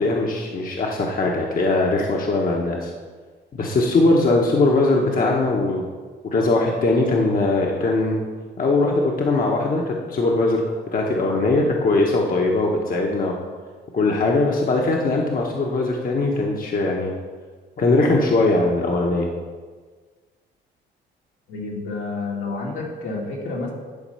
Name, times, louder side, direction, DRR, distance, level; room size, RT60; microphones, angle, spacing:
voice 1, 0.0-2.9 3.5-5.9 6.3-8.2 8.6-10.6 10.9-13.3 13.9-17.1 17.8-19.3, left 2 dB, 45° left, 0 dB, 1.1 m, -20 dB
voice 2, 21.5-23.7, left 3 dB, 75° left, -2 dB, 2.2 m, -29 dB
10.5 x 4.2 x 5.6 m, 1.5 s
cardioid pair, 90°, 20 cm